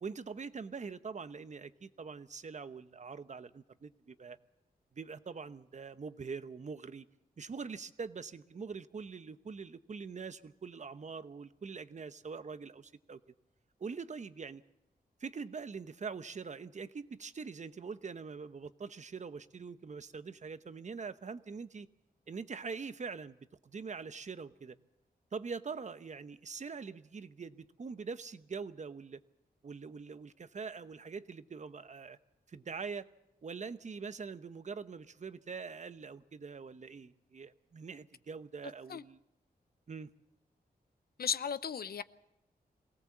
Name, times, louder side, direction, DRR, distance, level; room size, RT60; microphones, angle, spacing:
voice 1, 0.0-4.4 4.9-7.1 7.4-13.2 13.8-14.6 15.2-21.9 22.3-23.4 23.6-24.8 25.3-29.2 29.6-32.2 32.5-33.1 33.4-39.2 39.9-40.1, right 5 dB, 45° right, 0.9 m, -43 dB
voice 2, 41.2-42.0, left 7 dB, 70° left, 0.7 m, -35 dB
23.5 x 17.5 x 7.3 m
wide cardioid pair, 100°, 17 cm